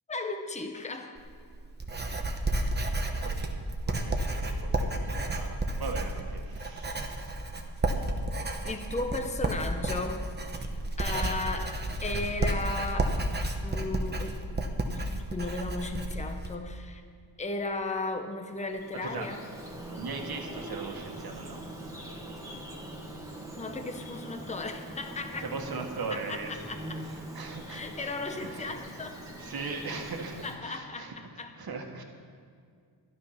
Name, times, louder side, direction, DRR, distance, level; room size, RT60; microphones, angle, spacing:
voice 1, 0.1-1.2 8.6-10.2 10.6-10.7 11.0-13.2 13.6-17.0 17.4-19.4 22.5-23.1 23.5-25.5 26.1-27.0 27.7-29.2 30.4-31.5, left 3 dB, 15° left, 6 dB, 0.9 m, -36 dB
Writing, 1.2-16.5, right 1 dB, 25° right, 1.0 m, -31 dB
voice 2, 3.2-3.6 3.9-7.4 8.5-8.7 19.0-19.3 19.9-21.6 25.4-26.6 27.0-27.8 28.4-28.7 29.4-31.1 31.6-32.0, right 4 dB, 55° right, 3 dB, 1.7 m, -39 dB
Bird vocalization bird call bird song, 18.5-30.6, right 1 dB, 10° right, 1.8 m, -42 dB
12.0 x 12.0 x 5.8 m, 2.2 s
wide cardioid pair, 125°, 43 cm